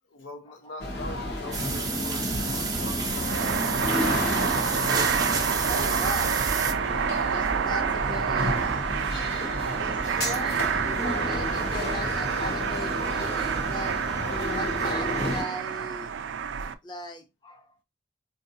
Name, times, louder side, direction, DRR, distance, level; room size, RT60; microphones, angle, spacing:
voice 1, 0.1-4.5 10.1-10.2 11.7-11.9, left 2 dB, 85° left, 0.7 m, -43 dB
sound 1, 0.8-15.4, left 1 dB, 55° left, 0.9 m, -31 dB
sound 2, 1.5-6.7, right 5 dB, 20° right, 0.5 m, -30 dB
sound 3, 3.1-16.7, right 7 dB, 75° right, 0.3 m, -28 dB
voice 2, 5.6-6.3 6.8-8.9 9.8-16.1 16.8-17.7, left 1 dB, 25° left, 0.6 m, -39 dB
4.5 x 2.6 x 2.6 m
head